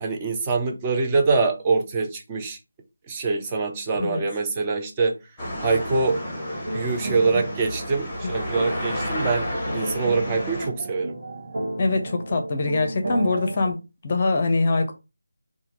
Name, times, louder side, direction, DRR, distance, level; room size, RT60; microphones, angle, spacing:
voice 1, 0.0-2.6 3.1-5.1 5.6-6.2 6.7-11.2, right 4 dB, 15° right, 0.4 m, -24 dB
sound 1, 5.4-10.7, left 1 dB, 10° left, 0.9 m, -31 dB
sound 2, 6.0-13.7, right 2 dB, 55° right, 1.4 m, -33 dB
voice 2, 11.8-13.8 14.0-14.9, left 3 dB, 35° left, 0.6 m, -23 dB
3.5 x 2.1 x 2.9 m
figure-of-eight pair, 165°, 0 cm